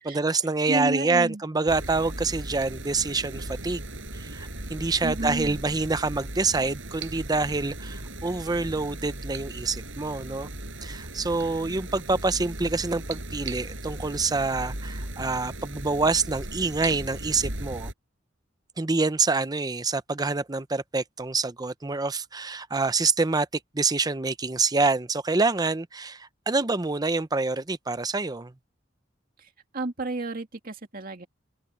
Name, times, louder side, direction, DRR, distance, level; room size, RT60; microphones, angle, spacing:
voice 1, 0.0-3.9 4.1-10.5 10.8-17.9 18.8-23.5 23.7-28.5, right 3 dB, 20° right, 0.7 m, -26 dB
voice 2, 0.7-1.4 5.0-5.6 29.7-31.3, right 2 dB, 50° right, 2.2 m, -31 dB
sound 1, 1.7-17.9, right 1 dB, 75° right, 7.4 m, -37 dB
open air
head